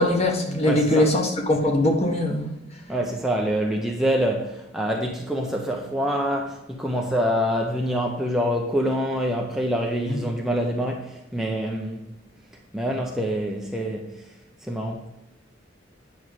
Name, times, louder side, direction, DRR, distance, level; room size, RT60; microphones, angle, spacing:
voice 1, 0.0-2.5 10.0-10.2, left 1 dB, 35° left, 1.6 m, -21 dB
voice 2, 0.6-1.1 2.9-12.1 12.7-14.1 14.7-15.1, equal, ahead, 0.8 m, -26 dB
9.3 x 6.3 x 4.8 m
head